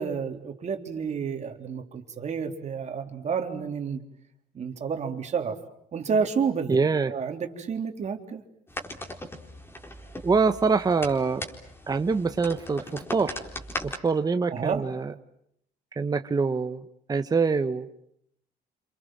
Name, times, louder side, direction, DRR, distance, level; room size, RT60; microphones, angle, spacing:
voice 1, 0.0-4.0 4.5-5.6 5.9-6.8 7.1-8.4 14.5-14.8, right 6 dB, 40° right, 5 dB, 3.6 m, -30 dB
voice 2, 6.7-7.1 10.2-11.4 11.9-13.4 13.8-15.1 16.0-16.8 17.1-18.0, right 4 dB, 20° right, 8 dB, 1.2 m, -25 dB
sound 1, 8.7-14.0, left 1 dB, 15° left, 4.2 m, -38 dB
28.0 x 27.5 x 7.6 m, 0.72 s
cardioid pair, 110°, 17 cm